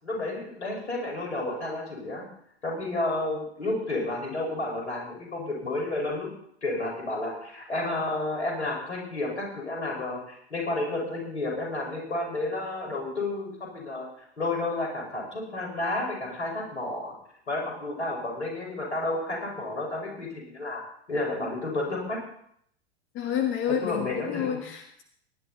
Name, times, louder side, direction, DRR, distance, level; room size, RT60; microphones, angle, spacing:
voice 1, 0.0-2.2 2.6-6.3 6.6-17.1 17.5-20.8 21.1-22.2 23.8-24.6, left 2 dB, 80° left, -1 dB, 5.3 m, -31 dB
voice 2, 23.1-25.0, left 9 dB, 35° left, 4 dB, 1.4 m, -29 dB
18.0 x 10.5 x 4.1 m, 0.69 s
figure-of-eight pair, 85°, 34 cm